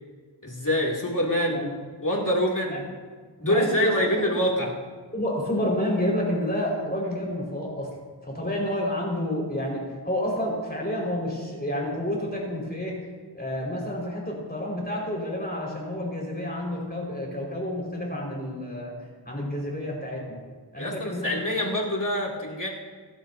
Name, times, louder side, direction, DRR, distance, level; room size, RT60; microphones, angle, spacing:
voice 1, 0.4-1.6 2.0-2.8 3.4-4.7 20.8-22.7, equal, 45° left, -3 dB, 3.0 m, -25 dB
voice 2, 3.4-4.3 5.1-7.9 8.2-13.0 13.3-18.9 19.3-20.4 20.7-21.6, left 1 dB, 20° left, -3 dB, 5.4 m, -29 dB
26.0 x 12.0 x 2.9 m, 1.5 s
wide cardioid pair, 55°, 43 cm